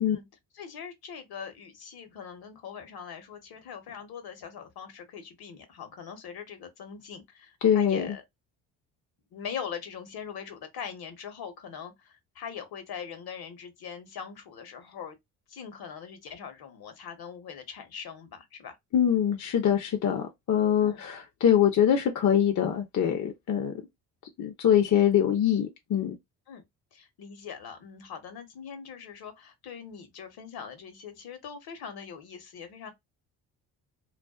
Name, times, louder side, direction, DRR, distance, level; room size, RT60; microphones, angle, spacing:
voice 1, 0.5-8.2 9.3-15.2 15.5-18.8 20.8-21.0 26.5-26.6 26.9-32.9, left 7 dB, 60° left, 1.1 m, -42 dB
voice 2, 7.6-8.1 18.9-23.7 24.4-26.1, left 9 dB, 45° left, 0.7 m, -24 dB
2.5 x 2.3 x 2.3 m
supercardioid pair, 60°, 42 cm